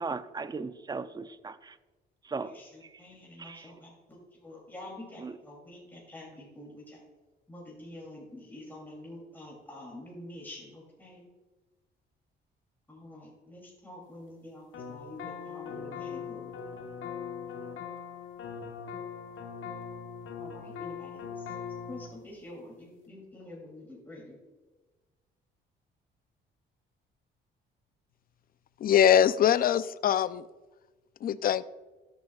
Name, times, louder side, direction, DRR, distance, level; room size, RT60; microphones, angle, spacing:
voice 1, 0.0-1.8 2.2-2.5 3.4-3.6 5.2-5.3, right 4 dB, 20° right, 0.5 m, -37 dB
voice 2, 2.4-7.1 7.5-11.3 12.9-16.5 20.4-21.5 21.9-24.4, left 1 dB, 10° left, 2.9 m, -47 dB
sound 1, 14.7-22.1, left 6 dB, 75° left, 1.3 m, -40 dB
voice 3, 28.8-30.4 31.2-31.6, left 9 dB, 45° left, 0.4 m, -23 dB
13.0 x 9.0 x 2.4 m
cardioid pair, 90°, 20 cm